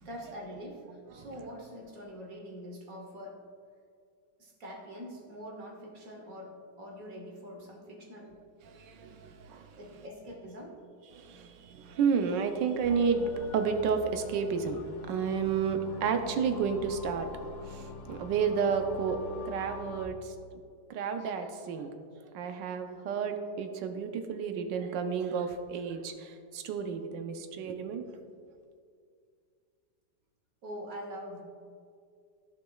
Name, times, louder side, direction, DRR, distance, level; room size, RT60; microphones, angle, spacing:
voice 1, 0.0-3.4 4.4-8.3 9.8-10.8 30.6-31.4, equal, 55° right, -1 dB, 1.4 m, -44 dB
voice 2, 8.7-9.7 11.2-14.8 15.1-17.3 17.6-19.2 19.4-20.3 20.9-21.9 22.3-28.0, right 6 dB, 90° right, 6 dB, 1.3 m, -31 dB
sound 1, 12.8-20.1, left 2 dB, 65° left, 0.8 m, -45 dB
14.0 x 5.1 x 2.3 m, 2.2 s
omnidirectional pair, 1.9 m